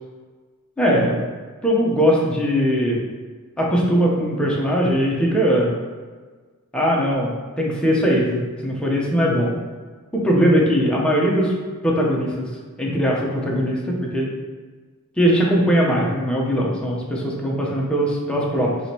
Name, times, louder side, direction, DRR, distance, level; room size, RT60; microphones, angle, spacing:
voice 1, 0.8-1.2 1.6-3.0 3.6-5.7 6.7-9.6 10.1-11.5 11.8-12.5 12.8-14.3 15.2-18.8, equal, 5° left, -4 dB, 0.8 m, -20 dB
4.9 x 3.0 x 2.8 m, 1.4 s
wide cardioid pair, 80°, 34 cm